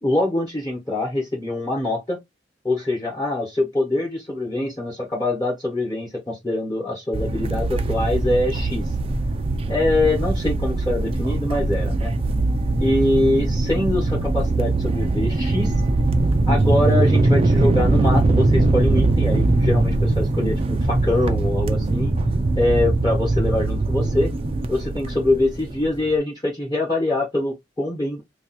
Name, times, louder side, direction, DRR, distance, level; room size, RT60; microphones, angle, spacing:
voice 1, 0.0-2.2 2.6-8.9 9.7-12.1 12.8-15.8 16.5-22.1 22.6-24.3 24.7-28.2, left 2 dB, 20° left, 1.2 m, -24 dB
sound 1, 7.1-26.1, right 2 dB, 30° right, 0.4 m, -21 dB
2.7 x 2.3 x 4.1 m
head